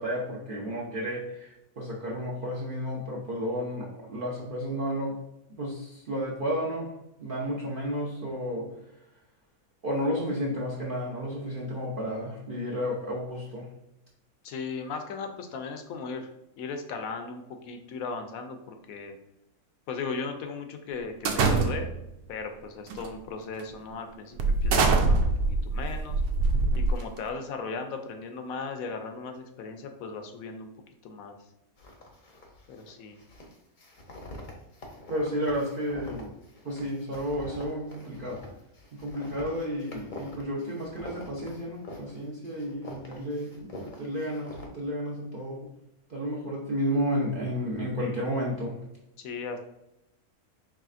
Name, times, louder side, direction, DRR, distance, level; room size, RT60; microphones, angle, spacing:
voice 1, 0.0-5.2 5.5-6.9 7.2-8.7 9.8-13.7 35.1-36.4 36.6-38.4 39.0-45.7 46.1-48.8, equal, 50° right, -4 dB, 0.7 m, -32 dB
voice 2, 14.4-16.3 16.6-19.1 19.9-22.0 22.3-26.2 26.7-30.7 31.0-31.4 32.7-33.2 49.2-49.6, left 4 dB, 70° left, 5 dB, 1.0 m, -37 dB
sound 1, 21.3-22.1 22.9-23.1 23.6-23.7 24.4-27.3, right 3 dB, 85° right, 1.1 m, -24 dB
sound 2, 31.8-32.9 33.2-42.2 42.4-44.7, left 1 dB, 40° left, 0.7 m, -45 dB
4.8 x 3.2 x 2.4 m, 0.87 s
omnidirectional pair, 1.6 m